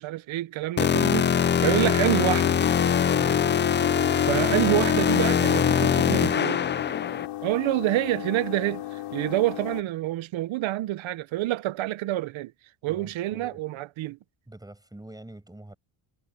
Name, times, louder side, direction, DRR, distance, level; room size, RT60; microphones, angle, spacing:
voice 1, 0.0-2.6 4.3-6.7 7.4-12.5 12.8-14.2, right 16 dB, 70° right, 0.9 m, -27 dB
sound 1, 0.8-7.3, left 8 dB, 25° left, 0.4 m, -22 dB
sound 2, 2.0-9.8, left 15 dB, 80° left, 3.5 m, -36 dB
voice 2, 12.9-13.6 14.5-15.8, right 1 dB, 10° right, 6.0 m, -45 dB
cardioid pair, 140°, 50 cm